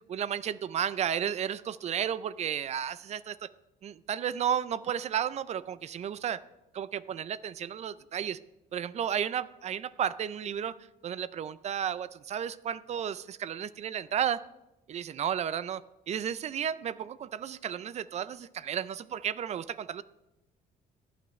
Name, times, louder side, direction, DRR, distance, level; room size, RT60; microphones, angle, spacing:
voice 1, 0.1-3.5 3.8-6.4 6.7-8.4 8.7-10.8 11.0-14.4 14.9-20.0, right 9 dB, 40° right, 17 dB, 0.4 m, -33 dB
14.5 x 9.3 x 3.2 m, 0.93 s
cardioid pair, 110°, 17 cm